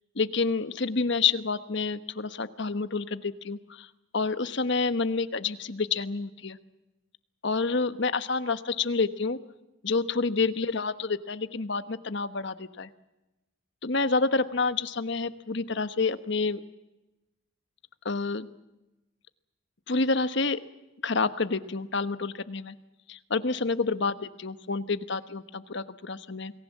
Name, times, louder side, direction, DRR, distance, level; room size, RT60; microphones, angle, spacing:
voice 1, 0.1-6.6 7.4-9.4 9.8-12.9 13.8-16.6 18.0-18.5 19.9-20.6 21.0-22.7 23.1-26.5, left 4 dB, 65° left, 12 dB, 1.2 m, -28 dB
28.5 x 19.5 x 7.4 m, 1.0 s
head